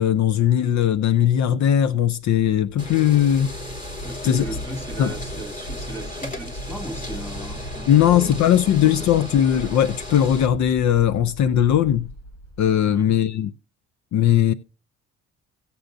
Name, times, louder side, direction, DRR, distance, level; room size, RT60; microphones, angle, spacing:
voice 1, 0.0-3.5 4.2-4.4 5.0-5.1 7.9-12.1 12.6-13.5 14.1-14.5, left 10 dB, 70° left, 0.6 m, -19 dB
sound 1, 2.2-13.2, right 1 dB, 85° left, 6.1 m, -38 dB
sound 2, 2.8-10.5, left 1 dB, 25° left, 3.0 m, -36 dB
voice 2, 4.0-9.3 12.9-13.1, right 1 dB, 5° left, 2.3 m, -36 dB
17.5 x 6.9 x 2.6 m
cardioid pair, 90°, 30 cm